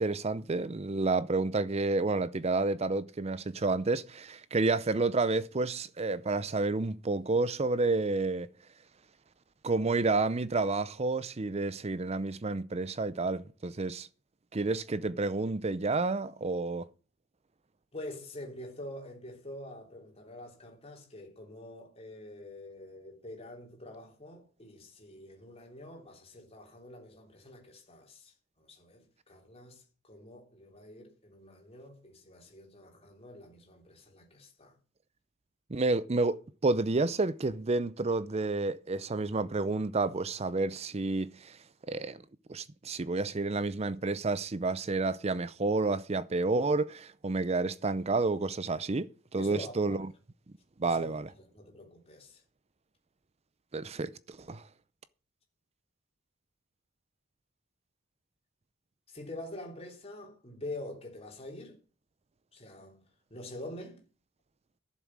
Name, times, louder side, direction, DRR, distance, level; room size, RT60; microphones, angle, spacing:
voice 1, 0.0-8.5 9.6-14.1 14.5-16.9 35.7-41.6 41.9-42.2 42.5-50.0 50.8-51.3 53.7-54.6, right 3 dB, 30° right, 0.5 m, -30 dB
voice 2, 17.9-34.8 49.4-50.0 50.8-52.4 59.1-61.8 62.5-63.0 63.3-64.0, left 1 dB, 30° left, 3.4 m, -46 dB
12.0 x 7.3 x 7.4 m
head